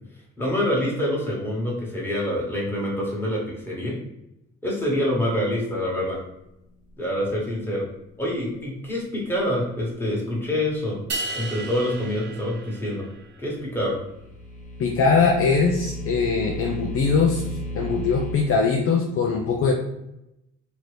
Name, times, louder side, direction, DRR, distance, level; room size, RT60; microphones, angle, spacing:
voice 1, 0.4-3.4 3.7-3.9 4.6-6.2 7.0-7.8 8.2-11.0 11.3-13.1 13.4-14.0, left 1 dB, 5° left, -5 dB, 1.3 m, -26 dB
sound 1, 11.1-13.4, right 2 dB, 40° right, 0.4 m, -34 dB
sound 2, 13.8-18.3, equal, 25° left, 0.8 m, -34 dB
voice 2, 14.8-19.7, left 4 dB, 50° left, 0 dB, 0.5 m, -21 dB
3.0 x 2.5 x 3.2 m, 0.87 s
cardioid pair, 90°, 30 cm